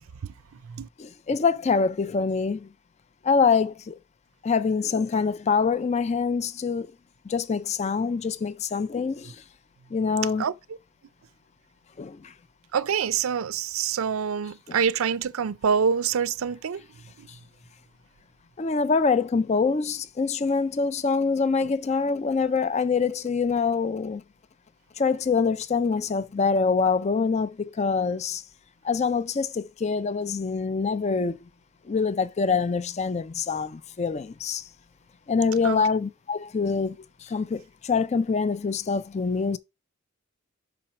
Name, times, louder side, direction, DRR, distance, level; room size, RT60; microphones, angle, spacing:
voice 1, 1.0-2.7 3.2-4.0 4.4-6.9 7.3-9.4 9.9-10.5 12.0-12.3 14.7-14.8 18.6-24.2 25.0-28.4 28.8-31.4 31.9-34.6 35.3-37.0 37.2-39.6, left 5 dB, 30° left, 0.4 m, -25 dB
voice 2, 12.7-16.8 17.2-17.3 35.6-35.8, right 7 dB, 75° right, 0.4 m, -26 dB
6.1 x 4.4 x 5.8 m
head